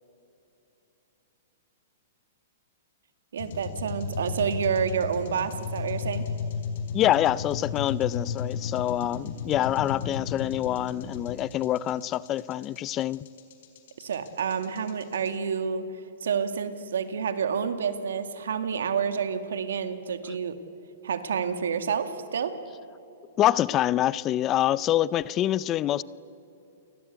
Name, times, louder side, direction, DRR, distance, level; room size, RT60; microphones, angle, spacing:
voice 1, 3.3-6.3 14.0-15.9 16.2-20.6 21.0-22.6, right 6 dB, 85° right, 9 dB, 2.1 m, -29 dB
sound 1, 3.4-15.3, left 5 dB, 60° left, 4.3 m, -34 dB
voice 2, 6.9-13.2 23.4-26.0, left 13 dB, 25° left, 20 dB, 0.5 m, -26 dB
29.0 x 20.0 x 8.3 m, 2.9 s
hypercardioid pair, 150°, 0 cm